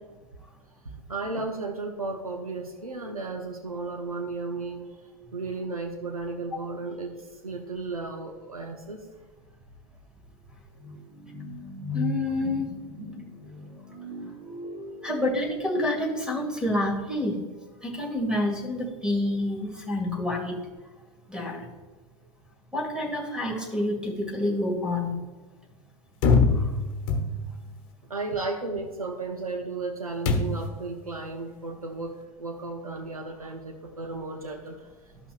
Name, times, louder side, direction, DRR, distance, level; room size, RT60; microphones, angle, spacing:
voice 1, 0.8-4.9 5.3-9.1 13.9-14.0 22.2-22.3 28.1-35.3, right 3 dB, 90° right, 3 dB, 0.8 m, -34 dB
sound 1, 9.2-9.3 9.6-15.8, right 1 dB, 30° right, 2.1 m, -38 dB
voice 2, 11.9-12.7 15.0-17.4 17.8-20.6 21.3-21.6 22.7-25.1 26.5-26.6, left 1 dB, 5° right, 1 dB, 2.1 m, -28 dB
sound 2, 26.2-27.7 30.3-30.8, left 4 dB, 45° left, 1.2 m, -23 dB
13.5 x 5.7 x 2.5 m, 1.3 s
figure-of-eight pair, 90°, 18 cm